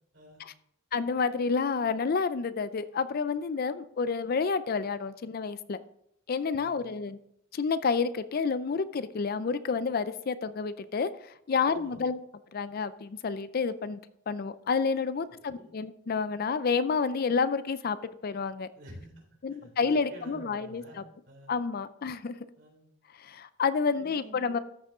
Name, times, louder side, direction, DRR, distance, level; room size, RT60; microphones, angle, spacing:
voice 1, 0.9-5.8 6.3-7.2 7.5-11.1 11.5-12.2 12.5-14.0 14.3-18.0 18.2-18.7 19.4-20.8 21.5-22.4 23.2-24.6, left 5 dB, 50° left, 14 dB, 0.4 m, -29 dB
voice 2, 6.5-7.0 11.7-12.0 15.3-15.7 18.7-21.5 22.6-22.9 23.9-24.6, right 1 dB, 60° right, -2 dB, 3.8 m, -50 dB
13.5 x 6.1 x 3.7 m, 0.73 s
head